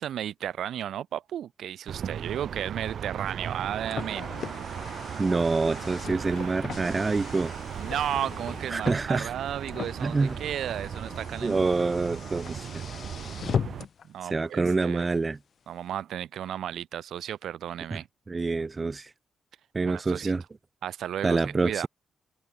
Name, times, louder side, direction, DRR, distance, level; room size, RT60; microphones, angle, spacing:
voice 1, 0.0-4.3 7.8-11.7 14.0-15.1 15.7-18.1 19.9-20.3 20.8-21.9, right 10 dB, 75° right, 1.9 m, -34 dB
sound 1, 1.9-13.8, right 8 dB, 55° right, 1.7 m, -37 dB
Car, 3.4-14.1, left 7 dB, 45° left, 2.0 m, -38 dB
sound 2, 4.4-4.5 5.5-6.8 7.4-8.8 9.7-9.8 10.2-10.3, left 10 dB, 70° left, 3.9 m, -46 dB
voice 2, 5.2-7.5 8.7-9.3 10.0-10.4 11.4-12.7 14.2-15.4 17.9-18.0 18.3-19.1 19.7-20.4 21.2-21.9, right 3 dB, 20° right, 0.5 m, -26 dB
wide cardioid pair, 150°, 0 cm